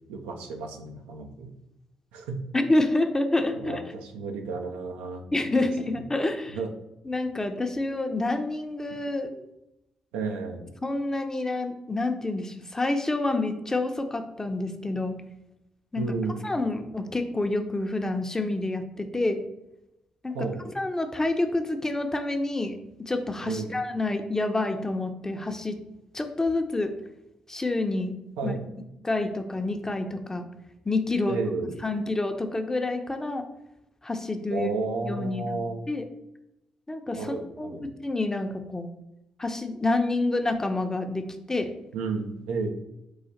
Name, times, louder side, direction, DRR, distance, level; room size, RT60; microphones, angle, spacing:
voice 1, 0.1-1.5 2.1-2.4 3.5-5.3 6.5-6.7 10.1-10.7 15.9-16.4 20.3-20.6 23.4-23.8 28.4-28.6 31.3-31.8 34.5-35.8 37.1-37.9 41.9-42.7, right 4 dB, 85° right, 3 dB, 0.6 m, -32 dB
voice 2, 2.5-3.8 5.3-6.6 7.1-9.4 10.8-15.2 15.9-16.1 16.4-19.4 20.2-25.8 26.1-26.9 27.5-28.1 28.4-28.5 29.0-30.5 30.9-31.4 31.8-33.4 34.0-34.7 35.0-35.6 35.9-36.1 36.9-38.9 39.4-41.7, left 2 dB, 20° left, 6 dB, 0.7 m, -28 dB
4.8 x 2.5 x 4.2 m, 0.89 s
hypercardioid pair, 50°, 3 cm